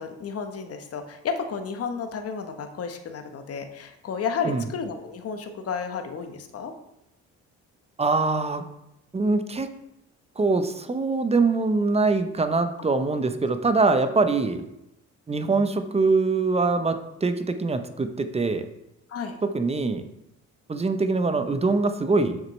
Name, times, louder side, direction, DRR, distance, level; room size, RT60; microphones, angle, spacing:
voice 1, 0.0-6.7 19.1-19.4, left 5 dB, 50° left, 6 dB, 0.9 m, -32 dB
voice 2, 8.0-8.7 9.1-9.7 10.4-14.7 15.3-18.7 19.4-20.0 20.7-22.4, right 3 dB, 20° right, 9 dB, 0.6 m, -23 dB
7.3 x 6.5 x 3.1 m, 0.86 s
cardioid pair, 90°, 30 cm